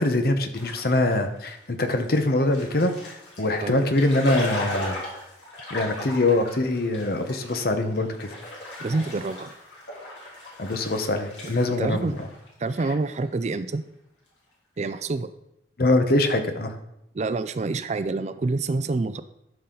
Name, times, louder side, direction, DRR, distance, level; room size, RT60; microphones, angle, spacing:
voice 1, 0.0-5.0 5.7-8.3 10.6-12.3 15.8-16.7, left 2 dB, 55° left, 7 dB, 0.9 m, -23 dB
sound 1, 0.5-13.1, left 1 dB, 85° left, 3.1 m, -37 dB
voice 2, 8.8-9.5 11.8-12.2 12.6-13.8 14.8-15.3 17.1-19.2, right 3 dB, 40° right, 12 dB, 0.4 m, -27 dB
12.5 x 5.6 x 3.9 m, 0.83 s
head